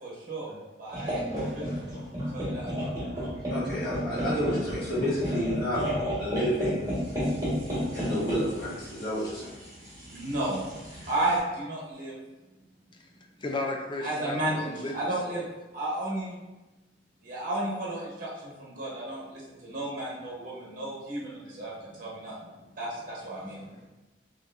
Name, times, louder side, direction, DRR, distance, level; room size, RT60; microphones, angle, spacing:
voice 1, 0.0-1.9 2.3-2.9 7.2-7.3 10.1-12.1 14.0-15.4 15.7-16.4 17.2-22.4 22.8-23.7, right 1 dB, 45° right, -5 dB, 1.1 m, -33 dB
sound 1, 0.9-11.4, equal, 20° right, 1.4 m, -32 dB
voice 2, 3.5-5.8 6.2-6.9 7.9-9.5, equal, 55° left, -8 dB, 1.5 m, -30 dB
voice 3, 13.4-14.9 15.3-15.4 23.6-23.9, left 2 dB, 25° left, 2 dB, 0.4 m, -35 dB
3.9 x 3.0 x 2.6 m, 1.1 s
head